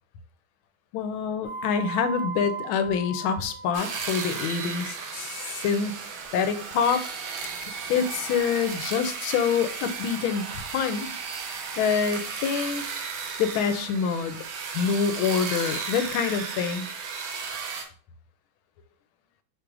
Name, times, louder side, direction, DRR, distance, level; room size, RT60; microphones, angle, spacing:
voice 1, 0.9-6.0 6.3-7.0 7.6-11.1 11.5-12.8 13.4-14.4 14.7-16.9, left 6 dB, 85° left, 10 dB, 1.4 m, -26 dB
sound 1, 1.4-4.0, right 4 dB, 45° left, 1.1 m, -36 dB
sound 2, 3.7-17.8, right 5 dB, 75° right, 1.5 m, -35 dB
4.7 x 2.4 x 4.6 m, 0.42 s
omnidirectional pair, 2.2 m